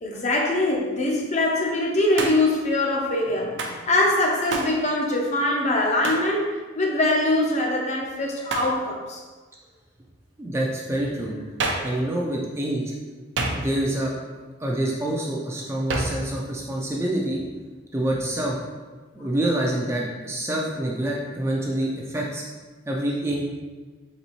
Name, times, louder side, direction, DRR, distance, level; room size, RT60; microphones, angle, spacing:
voice 1, 0.0-9.2, left 1 dB, 35° left, -1 dB, 0.6 m, -23 dB
Hands, 2.2-2.6 3.6-3.8 4.5-4.8 6.0-6.3 8.5-8.8 11.6-12.0 13.4-13.9 15.9-16.3, right 2 dB, 65° right, 0.5 m, -28 dB
voice 2, 10.4-11.4 11.8-12.9 13.5-14.1 14.6-17.4 17.9-18.6 19.1-22.4 22.9-23.4, right 1 dB, 15° right, -3 dB, 0.4 m, -26 dB
4.1 x 3.3 x 3.0 m, 1.3 s
head